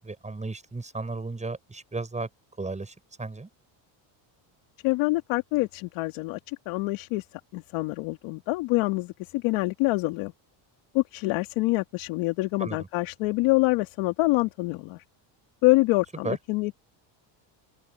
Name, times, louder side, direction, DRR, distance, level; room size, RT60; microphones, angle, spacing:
voice 1, 0.0-2.3 2.6-3.5 12.6-12.8 16.2-16.4, right 3 dB, 15° right, 7.8 m, -34 dB
voice 2, 4.8-7.2 7.5-10.3 10.9-15.0 15.6-16.8, left 22 dB, 90° left, 2.8 m, -26 dB
open air
cardioid pair, 125°, 48 cm